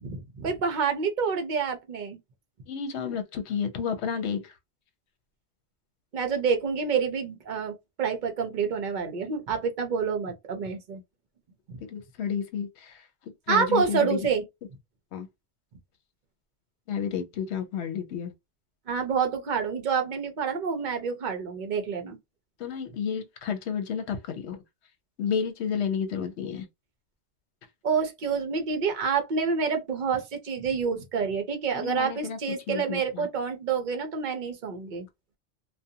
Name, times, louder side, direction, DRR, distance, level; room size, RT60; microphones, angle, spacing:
voice 1, 0.0-2.2 6.1-11.0 11.7-11.8 13.5-14.4 18.9-22.2 27.8-35.1, right 6 dB, 50° right, 0.7 m, -28 dB
voice 2, 2.7-4.4 11.9-12.9 13.5-14.2 15.1-15.3 16.9-18.3 22.6-24.6 25.2-26.7 31.7-32.4 32.7-33.3, left 7 dB, 75° left, 0.9 m, -31 dB
2.4 x 2.2 x 2.6 m
omnidirectional pair, 1.2 m